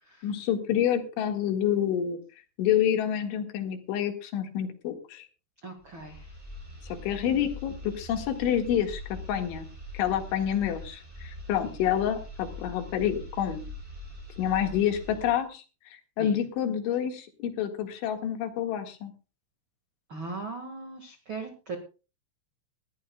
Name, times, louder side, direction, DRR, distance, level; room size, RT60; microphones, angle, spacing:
voice 1, 0.2-2.2 2.6-5.3 6.9-9.7 9.9-13.7 14.4-15.6 15.9-19.1, left 9 dB, 75° left, 5 dB, 4.1 m, -28 dB
voice 2, 5.6-6.3 16.2-16.4 20.1-21.8, right 3 dB, 85° right, 5 dB, 1.1 m, -39 dB
sound 1, 5.8-15.5, left 2 dB, 10° right, 2.7 m, -43 dB
21.0 x 14.5 x 2.3 m, 0.33 s
omnidirectional pair, 5.5 m